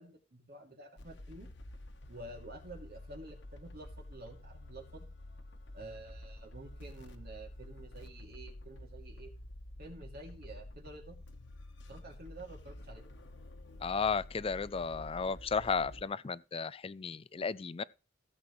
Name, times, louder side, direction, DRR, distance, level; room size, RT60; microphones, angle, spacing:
voice 1, 0.0-1.5 2.1-5.1 5.7-9.3 9.8-11.2 11.9-13.0, right 2 dB, 55° right, 2.8 m, -50 dB
sound 1, 1.0-16.0, left 1 dB, 65° left, 1.3 m, -50 dB
voice 2, 13.8-17.8, left 5 dB, 30° left, 0.4 m, -34 dB
16.5 x 7.7 x 3.3 m
head